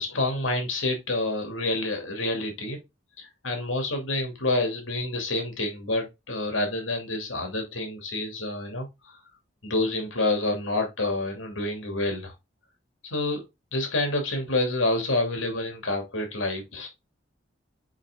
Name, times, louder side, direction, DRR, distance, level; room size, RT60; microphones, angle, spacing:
voice 1, 0.0-2.8 3.2-9.2 9.6-12.3 13.0-13.4 13.7-16.9, left 2 dB, 80° left, 2.7 m, -28 dB
6.5 x 5.2 x 3.7 m
head